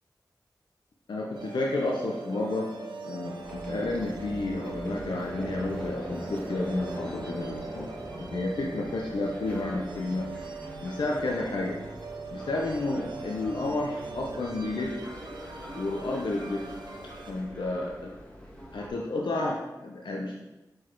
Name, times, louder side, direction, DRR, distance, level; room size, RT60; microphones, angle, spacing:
voice 1, 1.1-2.7 3.1-7.9 8.2-10.3 10.8-11.8 12.3-14.9 15.7-16.7 17.3-18.1 18.7-20.3, left 2 dB, 85° left, -2 dB, 0.7 m, -31 dB
sound 1, 1.3-17.3, right 4 dB, 80° right, 0.7 m, -41 dB
sound 2, 3.4-18.9, equal, 15° left, 1.4 m, -43 dB
5.1 x 4.0 x 4.6 m, 1.0 s
wide cardioid pair, 60°, 8 cm